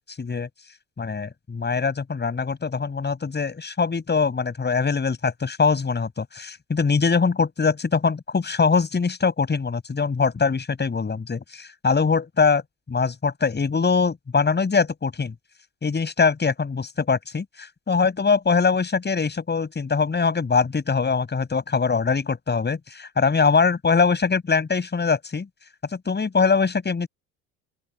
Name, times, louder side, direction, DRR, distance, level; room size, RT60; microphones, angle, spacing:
voice 1, 0.2-0.5 1.0-12.6 12.9-15.3 15.8-25.5 25.9-27.1, left 5 dB, 25° left, 7.7 m, -22 dB
open air
figure-of-eight pair, 60°, 39 cm